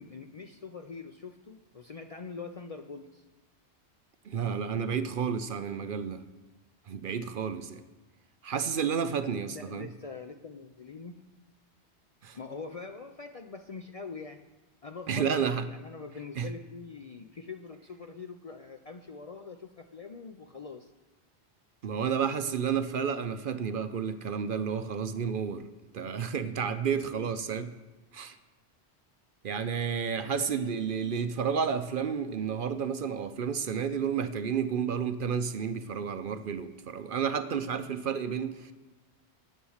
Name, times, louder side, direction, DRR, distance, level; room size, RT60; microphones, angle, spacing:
voice 1, 0.0-3.2 9.5-11.2 12.3-14.4 14.8-20.9 30.2-30.6, left 4 dB, 45° left, 6 dB, 0.5 m, -43 dB
voice 2, 4.2-6.2 6.9-7.8 8.4-9.9 12.2-12.4 15.1-15.7 16.4-16.5 21.8-25.7 25.9-27.7 28.1-28.4 29.4-38.7, right 7 dB, 60° right, 10 dB, 0.7 m, -31 dB
10.0 x 8.5 x 6.4 m, 1.2 s
omnidirectional pair, 1.1 m